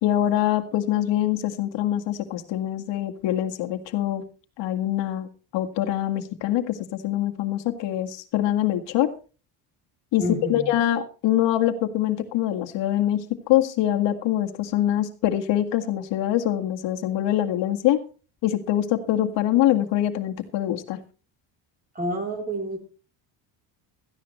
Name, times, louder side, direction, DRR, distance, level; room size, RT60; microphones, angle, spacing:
voice 1, 0.0-4.2 4.6-5.3 5.5-9.1 10.1-18.0 18.4-21.0, left 12 dB, 70° left, 4 dB, 2.0 m, -24 dB
voice 2, 10.2-10.7 22.0-22.8, equal, 20° right, 3 dB, 3.6 m, -28 dB
17.5 x 14.5 x 3.2 m, 0.35 s
cardioid pair, 160°, 45 cm